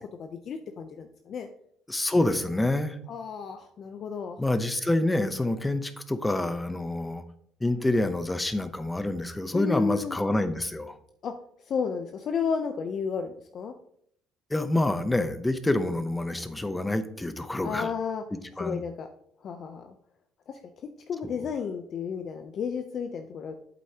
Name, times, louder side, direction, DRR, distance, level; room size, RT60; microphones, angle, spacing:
voice 1, 0.2-1.5 3.1-4.4 9.5-10.2 11.2-11.4 11.7-13.7 17.6-18.2 18.6-19.1 19.4-19.9 20.5-20.6 21.1-23.5, left 6 dB, 50° left, 6 dB, 0.6 m, -32 dB
voice 2, 1.9-3.0 4.4-7.2 7.6-11.0 14.5-17.9 18.6-18.8 21.2-21.4, left 2 dB, 10° left, 10 dB, 0.7 m, -27 dB
8.1 x 7.8 x 2.9 m, 0.69 s
cardioid pair, 115°, 0 cm